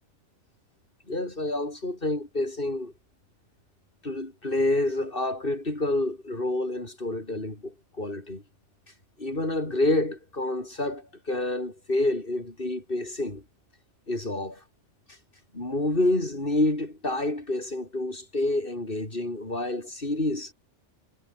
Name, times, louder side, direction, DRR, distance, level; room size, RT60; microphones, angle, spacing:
voice 1, 1.1-2.9 4.0-8.4 9.2-13.4 14.1-14.6 15.5-20.5, left 2 dB, 50° left, 5.5 m, -28 dB
omnidirectional pair, 1.2 m